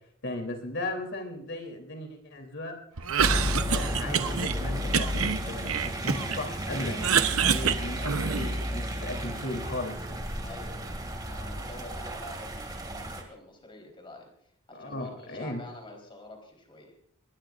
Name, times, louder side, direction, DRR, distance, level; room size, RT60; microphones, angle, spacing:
voice 1, 0.2-2.8 3.3-10.3 11.6-11.7 14.7-15.6, left 1 dB, 55° left, 4 dB, 3.3 m, -37 dB
Cough, 3.0-4.5 4.9-6.4 6.7-8.6, right 7 dB, 70° right, 0.9 m, -27 dB
sound 1, 3.2-13.2, equal, 20° right, 2.3 m, -33 dB
voice 2, 10.4-16.9, left 2 dB, 25° left, 2 dB, 4.0 m, -47 dB
21.0 x 20.0 x 2.5 m, 0.71 s
head